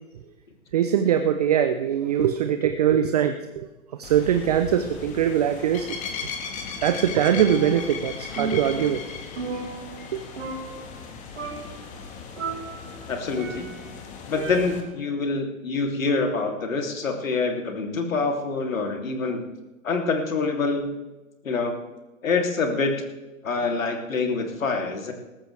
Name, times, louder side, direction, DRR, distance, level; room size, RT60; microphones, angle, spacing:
voice 1, 0.7-3.7 4.0-5.9 6.8-9.0 10.1-10.2, right 9 dB, 30° right, 9 dB, 0.6 m, -22 dB
sound 1, 4.0-14.8, left 5 dB, 20° left, 1.6 m, -37 dB
Percussion, 7.4-8.1 8.4-10.1 10.4-11.1 11.4-11.9 12.4-13.9 14.4-15.0, right 4 dB, 60° right, 4.7 m, -35 dB
voice 2, 13.1-13.7 14.3-19.4 19.8-20.9 21.4-21.7 22.2-22.9 23.4-25.1, left 4 dB, 70° left, 3 dB, 3.0 m, -26 dB
19.5 x 14.0 x 3.4 m, 1.1 s
hypercardioid pair, 135°, 42 cm